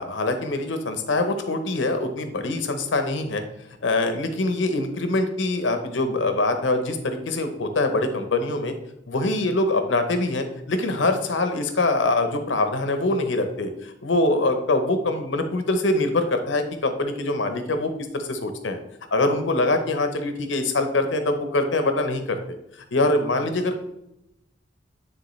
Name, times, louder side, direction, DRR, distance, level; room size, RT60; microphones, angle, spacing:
voice 1, 0.0-3.4 3.8-8.7 9.1-18.8 19.1-22.4 22.8-23.8, left 2 dB, 80° left, 7 dB, 0.8 m, -24 dB
9.5 x 3.6 x 3.1 m, 0.85 s
head